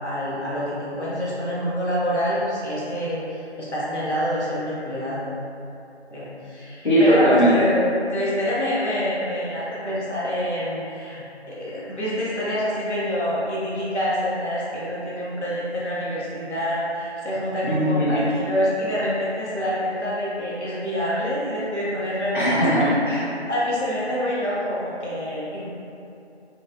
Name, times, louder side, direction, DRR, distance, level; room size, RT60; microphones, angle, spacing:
voice 1, 0.0-5.2 6.1-22.6 23.5-25.6, equal, 80° left, -8 dB, 1.1 m, -26 dB
voice 2, 6.8-7.5 17.6-18.2 22.3-23.3, equal, 45° left, -9 dB, 0.8 m, -19 dB
3.0 x 2.4 x 2.5 m, 2.8 s
figure-of-eight pair, 165°, 34 cm